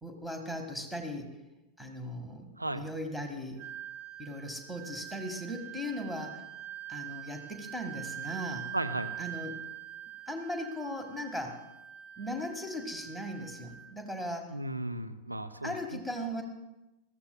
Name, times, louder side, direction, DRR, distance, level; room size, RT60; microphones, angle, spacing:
voice 1, 0.0-1.4 1.8-3.6 4.2-6.4 6.9-8.7 9.2-9.6 10.3-11.6 12.2-14.6 15.6-16.4, equal, ahead, 4 dB, 1.8 m, -38 dB
Wind instrument woodwind instrument, 3.6-14.0, right 11 dB, 40° right, 1.7 m, -44 dB
voice 2, 8.7-9.1 14.5-16.0, right 1 dB, 85° right, 8 dB, 0.7 m, -35 dB
21.0 x 15.0 x 2.3 m, 1.0 s
figure-of-eight pair, 90°, 0 cm